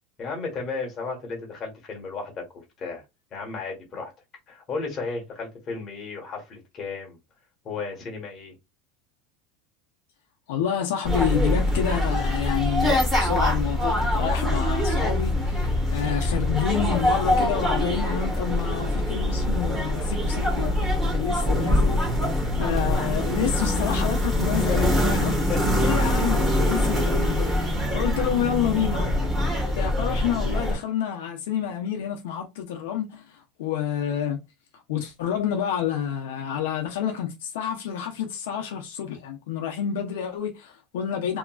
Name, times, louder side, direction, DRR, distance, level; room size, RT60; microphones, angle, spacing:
voice 1, 0.2-3.0 3.3-4.1 4.5-7.2 7.6-8.5 24.5-24.9 25.2-25.6, left 4 dB, 30° left, 1.1 m, -34 dB
voice 2, 10.5-20.7 21.1-22.0 22.6-25.4 25.8-27.5 27.9-29.1 29.8-33.2 33.6-34.4 34.9-41.4, left 9 dB, 85° left, 0.6 m, -28 dB
sound 1, 11.0-30.8, left 1 dB, 5° right, 1.1 m, -24 dB
2.8 x 2.4 x 2.3 m
supercardioid pair, 160°, 0 cm